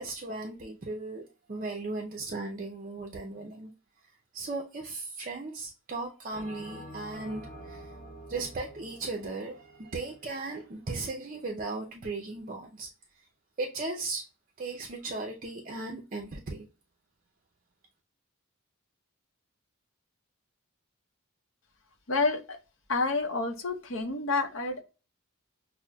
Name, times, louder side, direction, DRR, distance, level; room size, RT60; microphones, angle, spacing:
voice 1, 0.0-3.7 4.3-7.9 8.3-12.9 13.6-14.2 14.6-16.7, right 3 dB, 40° right, 0.5 m, -37 dB
Bell, 6.3-10.9, equal, 40° left, 1.4 m, -48 dB
voice 2, 22.1-22.6 22.9-24.8, left 3 dB, 65° left, 0.7 m, -29 dB
6.1 x 2.1 x 2.2 m
head